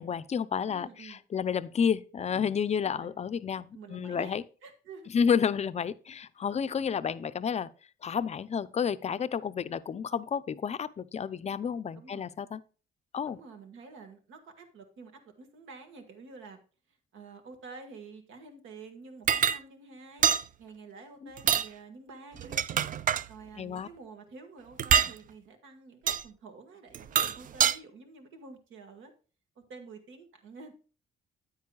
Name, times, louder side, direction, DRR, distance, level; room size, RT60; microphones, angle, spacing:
voice 1, 0.0-4.4 5.1-7.7 8.0-12.6 13.1-13.4 21.2-21.3 23.6-23.9, left 7 dB, 35° left, 0.5 m, -30 dB
voice 2, 0.7-1.2 2.8-3.1 3.4-4.3 4.6-5.1 6.6-6.7 11.9-12.3 13.2-16.6 17.1-20.3 20.6-29.1 29.5-30.7, right 4 dB, 80° right, 1.6 m, -49 dB
sound 1, 19.3-19.6 20.2-20.4 21.4-21.7 22.4-23.3 24.8-25.1 26.1-26.2 26.9-27.8, right 8 dB, 45° right, 0.4 m, -25 dB
9.4 x 9.2 x 2.3 m
cardioid pair, 90°, 20 cm